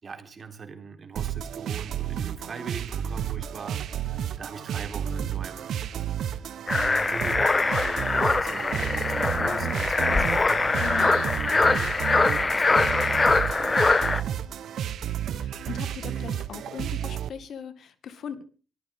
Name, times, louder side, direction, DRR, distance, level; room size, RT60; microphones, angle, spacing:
voice 1, 0.0-5.8 6.1-6.4 6.6-11.9 12.3-14.5, right 5 dB, 40° right, 3.6 m, -41 dB
sound 1, 1.2-17.3, right 10 dB, 70° right, 1.0 m, -32 dB
sound 2, 6.7-14.2, left 3 dB, 25° left, 1.0 m, -23 dB
voice 2, 9.4-9.7 10.0-10.1 10.8-11.1 15.3-18.4, left 8 dB, 60° left, 1.9 m, -39 dB
23.5 x 15.0 x 3.6 m
cardioid pair, 90°, 0 cm